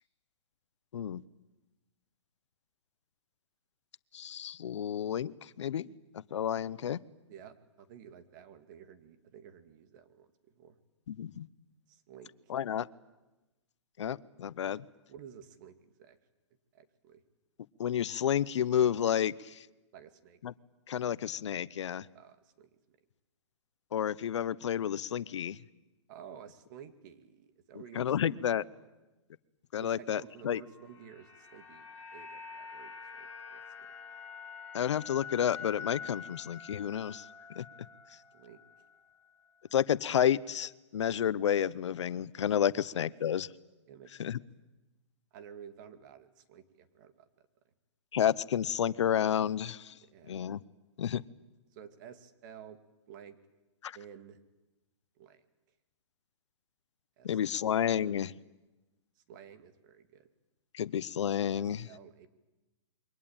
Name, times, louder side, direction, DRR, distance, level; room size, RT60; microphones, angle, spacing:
voice 1, 4.1-5.9 6.3-7.0 11.1-11.5 12.5-12.9 14.0-14.8 17.8-19.7 20.4-20.5 20.9-22.1 23.9-25.6 27.9-28.6 29.7-30.6 34.7-37.2 37.6-37.7 39.7-43.5 44.2-44.4 48.1-49.9 50.3-50.6 51.0-51.2 53.8-54.0 57.2-58.3 60.7-61.9, left 9 dB, 70° left, 18 dB, 0.9 m, -30 dB
voice 2, 7.3-10.7 11.9-12.3 15.1-16.2 16.7-17.2 19.9-20.4 22.1-22.8 26.1-28.4 28.8-28.9 29.8-33.9 36.8-36.9 38.3-38.6 43.9-44.4 45.3-47.3 50.0-50.5 51.7-52.8 53.1-53.4 53.9-54.4 55.2-55.4 57.2-57.7 59.2-60.3 61.5-62.3, right 8 dB, 40° right, 10 dB, 2.3 m, -52 dB
sound 1, 30.6-38.9 39.2-39.4, left 6 dB, 15° left, 6.0 m, -46 dB
28.0 x 23.5 x 8.9 m, 1.1 s
hypercardioid pair, 155°, 16 cm